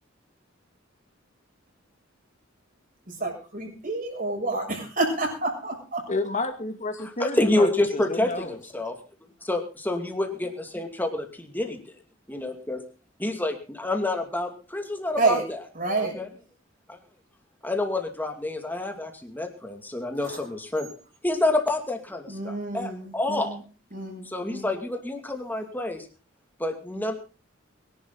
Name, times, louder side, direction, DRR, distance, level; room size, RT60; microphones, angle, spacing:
voice 1, 3.1-6.0 15.2-15.4 15.7-16.2 20.2-20.5 22.3-23.6 23.9-24.7, right 2 dB, 45° right, 2 dB, 7.1 m, -29 dB
voice 2, 6.1-8.6, left 2 dB, 40° left, 6 dB, 2.2 m, -30 dB
voice 3, 7.4-9.0 9.4-11.8 12.3-12.8 13.2-15.4 16.0-16.3 16.9-17.0 17.6-20.9 21.2-23.6 24.3-26.1 26.6-27.2, left 2 dB, 10° left, 4 dB, 2.5 m, -28 dB
22.5 x 11.5 x 4.0 m, 0.36 s
head